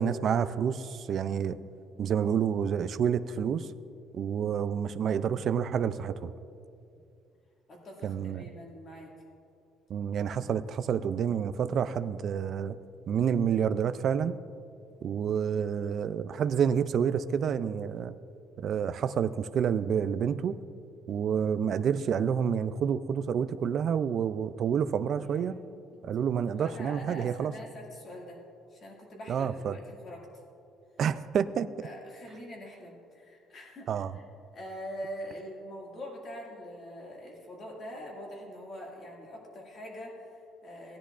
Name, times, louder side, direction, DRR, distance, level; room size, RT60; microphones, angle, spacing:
voice 1, 0.0-1.6 2.0-3.7 4.1-6.3 8.0-8.4 9.9-12.8 13.1-14.4 15.0-18.2 18.6-20.6 21.1-25.5 26.0-27.5 29.3-29.8 31.0-31.9 33.9-34.1, right 7 dB, 40° right, 12 dB, 0.3 m, -28 dB
voice 2, 7.7-9.1 25.2-26.1 26.5-28.4 28.7-30.2 31.8-34.3 34.5-41.0, equal, 35° left, -2 dB, 2.1 m, -44 dB
18.0 x 10.5 x 2.5 m, 2.5 s
cardioid pair, 170°, 0 cm